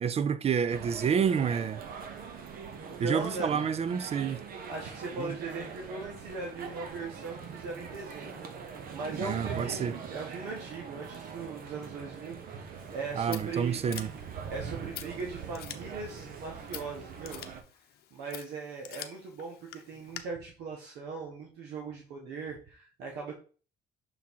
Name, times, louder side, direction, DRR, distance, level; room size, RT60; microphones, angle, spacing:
voice 1, 0.0-1.8 3.0-4.4 5.2-5.4 9.2-9.9 13.1-14.1, right 7 dB, 35° right, 0.4 m, -29 dB
sound 1, 0.7-17.6, right 6 dB, 60° right, 1.0 m, -42 dB
voice 2, 3.0-3.5 4.7-13.8 14.5-17.4 18.1-23.3, right 4 dB, 85° right, 1.2 m, -39 dB
Scissors, 12.8-20.2, left 12 dB, 70° left, 0.7 m, -47 dB
6.2 x 3.6 x 4.4 m
cardioid pair, 110°, 17 cm